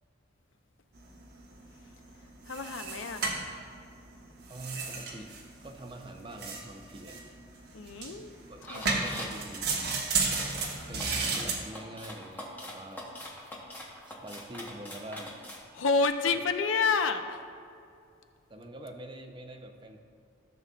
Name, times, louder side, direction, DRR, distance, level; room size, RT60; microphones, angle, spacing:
sound 1, 1.0-11.6, right 4 dB, 55° right, 1.2 m, -35 dB
voice 1, 2.5-3.3 7.7-8.3 8.7-8.8 15.7-17.4, left 4 dB, 90° left, 8 dB, 0.6 m, -29 dB
voice 2, 4.5-5.3 5.6-7.2 8.5-9.7 10.9-13.4 14.1-15.4 16.3-16.5 18.5-20.0, right 1 dB, 25° right, 4 dB, 0.6 m, -45 dB
sound 2, 8.6-9.4 10.5-15.6, left 1 dB, 10° left, 1.1 m, -43 dB
15.0 x 7.0 x 2.4 m, 2.5 s
head